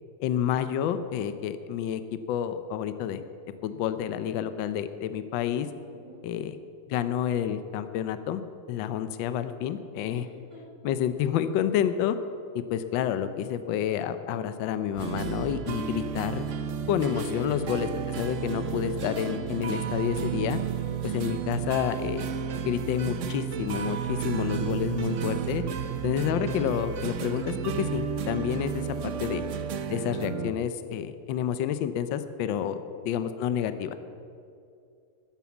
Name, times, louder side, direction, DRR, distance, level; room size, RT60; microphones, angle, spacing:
voice 1, 0.2-3.2 3.6-5.7 6.2-6.6 6.9-8.4 8.7-10.2 10.8-12.2 12.5-16.4 16.9-20.6 21.0-22.3 22.7-25.6 26.0-29.4 29.9-34.0, left 9 dB, 75° left, 11 dB, 1.3 m, -29 dB
voice 2, 5.9-6.2 10.1-10.6 17.1-17.3 23.8-24.4 24.8-24.9 28.7-29.1 32.4-32.6, right 1 dB, 15° left, -4 dB, 3.1 m, -50 dB
sound 1, 15.0-30.5, right 8 dB, 80° right, 0.6 m, -32 dB
13.0 x 10.5 x 7.1 m, 2.5 s
omnidirectional pair, 2.2 m